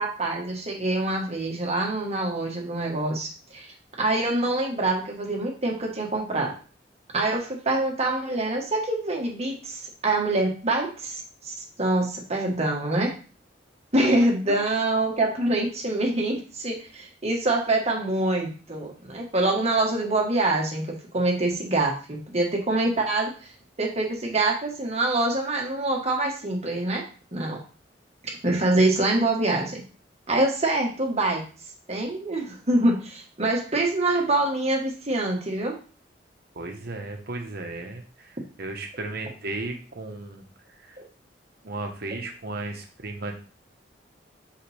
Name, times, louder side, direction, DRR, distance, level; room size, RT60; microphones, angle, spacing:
voice 1, 0.0-6.5 7.1-13.1 13.9-23.3 23.8-27.0 27.3-27.6 28.2-29.8 30.3-31.4 31.9-35.8 41.0-41.1, right 2 dB, 35° right, 0 dB, 1.6 m, -25 dB
voice 2, 36.5-40.4 40.8-41.0 41.6-43.3, right 2 dB, 60° right, 3 dB, 1.3 m, -35 dB
5.6 x 5.2 x 3.5 m, 0.37 s
head